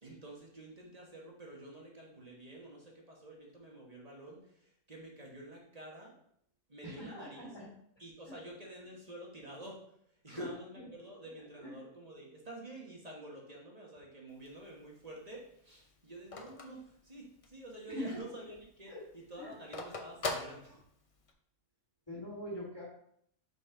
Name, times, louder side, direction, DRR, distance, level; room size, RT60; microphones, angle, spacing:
voice 1, 0.0-6.1 6.7-7.5 8.0-9.9 10.2-20.8, right 1 dB, 25° right, -2 dB, 1.4 m, -49 dB
voice 2, 6.8-7.7 8.3-8.4 10.3-10.9 11.6-11.8 17.9-18.2 18.9-19.0 19.4-19.5 22.1-22.8, left 1 dB, 15° left, -6 dB, 1.7 m, -42 dB
Telephone, 14.3-17.7 18.1-18.2 18.4-21.3, left 3 dB, 40° left, 0.5 m, -42 dB
5.6 x 5.3 x 3.9 m, 0.69 s
omnidirectional pair, 1.6 m